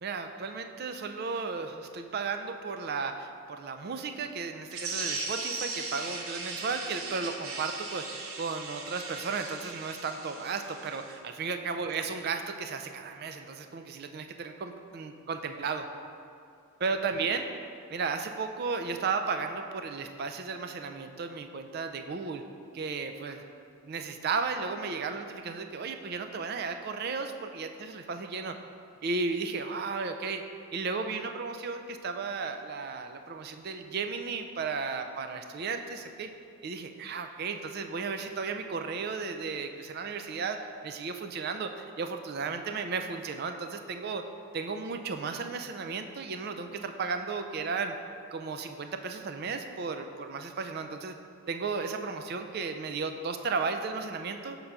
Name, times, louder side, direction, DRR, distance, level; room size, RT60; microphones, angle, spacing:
voice 1, 0.0-15.9 16.8-17.5 17.9-22.4 22.7-23.4 23.8-28.6 29.0-30.4 30.7-36.3 36.6-41.7 42.0-44.3 44.5-47.9 48.3-51.1 51.5-54.6, right 4 dB, 45° right, 7 dB, 0.3 m, -34 dB
sound 1, 4.7-11.1, right 3 dB, 70° right, 0.8 m, -38 dB
5.4 x 3.7 x 5.8 m, 2.5 s
head